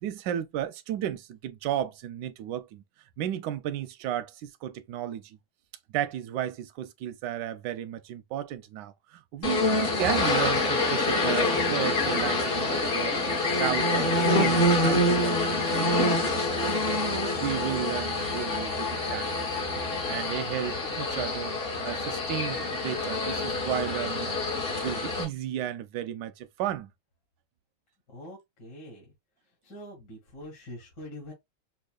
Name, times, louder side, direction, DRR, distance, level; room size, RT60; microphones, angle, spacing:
voice 1, 0.0-2.8 3.2-5.4 5.9-19.5 20.0-21.5 21.8-24.4 24.7-26.9, right 11 dB, 75° right, 1.1 m, -34 dB
sound 1, 9.4-25.2, left 2 dB, 40° left, 0.9 m, -26 dB
voice 2, 28.1-29.1 29.6-31.3, left 1 dB, 55° left, 2.4 m, -44 dB
5.5 x 2.4 x 2.4 m
omnidirectional pair, 2.3 m